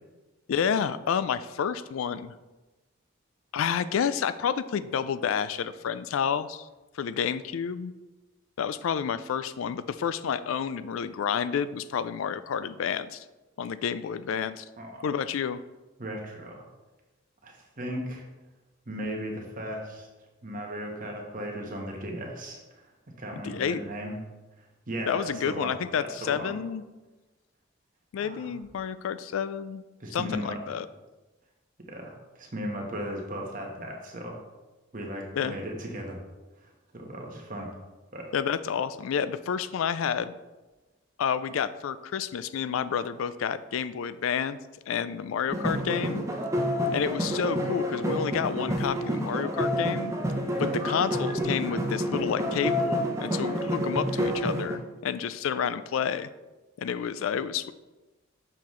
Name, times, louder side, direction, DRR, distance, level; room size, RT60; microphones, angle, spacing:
voice 1, 0.5-2.3 3.5-6.7 6.9-7.9 8.6-13.3 13.6-14.6 15.0-15.6 23.4-23.8 25.1-26.8 28.1-29.8 30.1-30.9 35.3-35.5 38.3-40.3 41.2-44.6 44.9-46.2 46.9-50.1 50.6-56.3 56.8-57.7, left 7 dB, 75° left, 15 dB, 0.3 m, -29 dB
voice 2, 16.0-16.6 17.4-18.2 18.9-20.1 20.4-22.9 23.2-24.2 24.6-26.5 28.2-28.5 30.0-30.8 31.9-34.4 34.9-36.2 36.6-37.7 38.1-38.3, equal, 40° right, 0 dB, 1.1 m, -37 dB
sound 1, 45.5-54.8, equal, 15° right, 0.6 m, -29 dB
6.8 x 5.5 x 3.1 m, 1.1 s
head